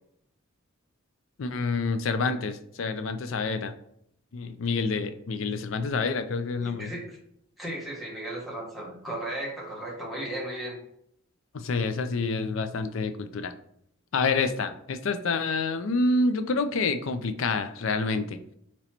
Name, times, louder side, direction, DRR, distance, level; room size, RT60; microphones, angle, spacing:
voice 1, 1.4-3.7 4.3-6.9 11.5-13.5 14.1-18.4, left 3 dB, 70° left, 9 dB, 0.5 m, -28 dB
voice 2, 6.6-7.2 7.6-10.8, right 1 dB, ahead, -4 dB, 1.3 m, -35 dB
4.1 x 3.0 x 4.3 m, 0.71 s
head